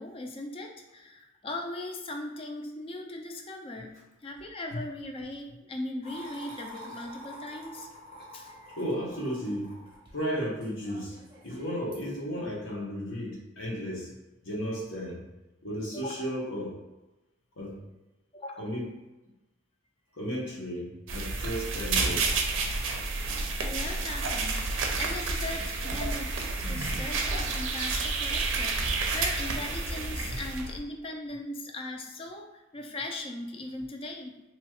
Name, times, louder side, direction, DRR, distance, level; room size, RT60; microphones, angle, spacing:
voice 1, 0.0-7.9 8.3-8.8 15.9-16.3 18.3-18.8 23.6-34.4, left 2 dB, 30° left, 3 dB, 0.4 m, -39 dB
sound 1, 6.0-12.1, equal, 25° right, 0.7 m, -47 dB
voice 2, 8.8-9.7 10.1-11.2 11.4-14.1 14.4-15.2 15.6-16.8 17.6-17.8 18.6-18.9 20.1-22.4, equal, 90° left, -4 dB, 1.0 m, -34 dB
sound 2, 21.1-30.8, right 3 dB, 70° right, 0.5 m, -30 dB
2.9 x 2.3 x 3.0 m, 1.0 s
head